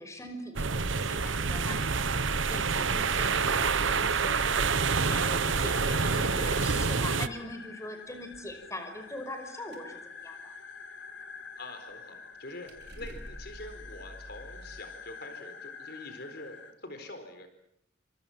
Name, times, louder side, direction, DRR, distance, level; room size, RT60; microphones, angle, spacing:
voice 1, 0.0-10.5, left 1 dB, 15° left, 6 dB, 5.4 m, -42 dB
sound 1, 0.6-7.3, right 5 dB, 80° right, 1.1 m, -27 dB
sound 2, 3.0-16.7, left 5 dB, 75° left, 3.0 m, -47 dB
sound 3, 8.1-8.7 9.0-9.4 9.7-9.9 10.2-10.4 12.3-12.4 12.7-14.8, equal, 55° right, 4.4 m, -47 dB
voice 2, 11.6-17.5, left 2 dB, 55° left, 8 dB, 4.3 m, -45 dB
29.5 x 26.5 x 7.4 m, 0.73 s
head